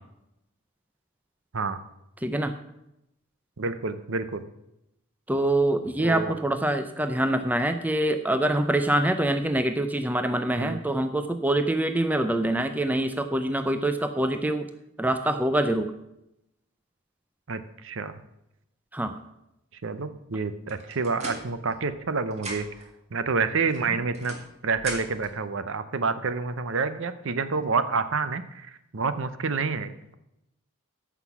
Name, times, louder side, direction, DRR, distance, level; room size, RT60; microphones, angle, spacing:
voice 1, 2.2-2.5 5.3-14.7 15.0-15.9 18.9-19.2, right 1 dB, 5° right, 8 dB, 0.5 m, -25 dB
voice 2, 3.6-4.4 6.0-6.4 10.6-10.8 17.5-18.1 19.8-22.7 23.1-24.3 24.6-30.1, right 4 dB, 55° right, 12 dB, 0.7 m, -28 dB
sound 1, 20.7-22.1 22.3-22.9 23.7-25.3, right 1 dB, 30° right, 2.2 m, -40 dB
14.0 x 6.0 x 6.0 m, 0.85 s
head